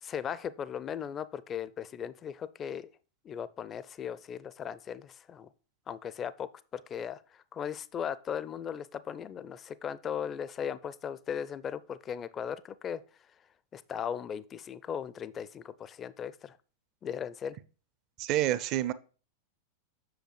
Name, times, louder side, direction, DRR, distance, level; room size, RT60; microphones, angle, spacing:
voice 1, 0.0-2.9 3.2-5.5 5.9-13.0 13.7-16.6 17.0-17.6, left 8 dB, 25° left, 0.4 m, -37 dB
voice 2, 18.2-18.9, right 13 dB, 40° right, 0.5 m, -28 dB
7.8 x 6.2 x 3.2 m
figure-of-eight pair, 90°, 0 cm